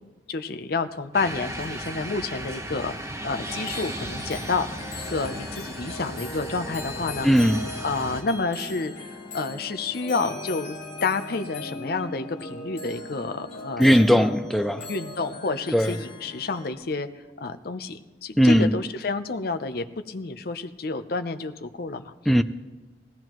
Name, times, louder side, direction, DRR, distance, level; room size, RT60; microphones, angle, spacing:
voice 1, 0.0-2.9 3.2-7.3 7.8-10.7 11.0-14.4 14.9-17.1 17.4-22.1, left 3 dB, 60° left, 0.6 m, -29 dB
sound 1, 1.1-8.2, right 1 dB, 15° right, 0.9 m, -36 dB
sound 2, 3.4-16.7, left 2 dB, 40° left, 2.3 m, -39 dB
voice 2, 7.2-7.6 13.8-14.8 15.7-15.9 18.4-18.7 22.3-22.4, equal, ahead, 0.4 m, -18 dB
18.5 x 16.0 x 3.1 m
head